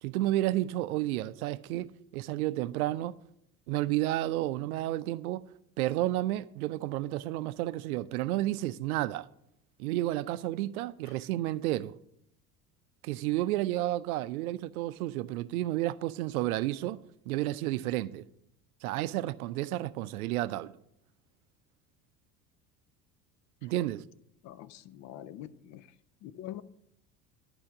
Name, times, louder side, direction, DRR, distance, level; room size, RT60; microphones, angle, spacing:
voice 1, 0.0-3.1 3.7-5.4 5.8-9.3 9.8-11.9 13.0-17.0 17.3-18.2 18.8-20.7 23.6-24.0, right 15 dB, 65° right, 0.5 m, -31 dB
voice 2, 24.4-25.9 26.2-26.6, left 12 dB, 40° left, 0.5 m, -44 dB
11.0 x 4.8 x 5.9 m
figure-of-eight pair, 65°, 48 cm